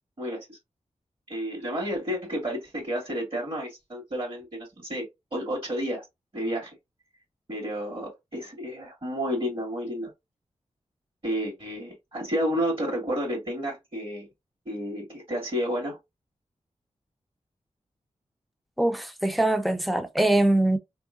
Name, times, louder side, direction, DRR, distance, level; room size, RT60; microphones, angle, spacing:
voice 1, 0.2-0.6 1.3-6.1 6.3-6.7 7.5-10.1 11.2-14.3 14.7-16.0, equal, 45° right, 2.3 m, -31 dB
voice 2, 18.8-20.8, right 1 dB, ahead, 0.6 m, -23 dB
3.5 x 3.4 x 2.6 m
wide cardioid pair, 65°, 12 cm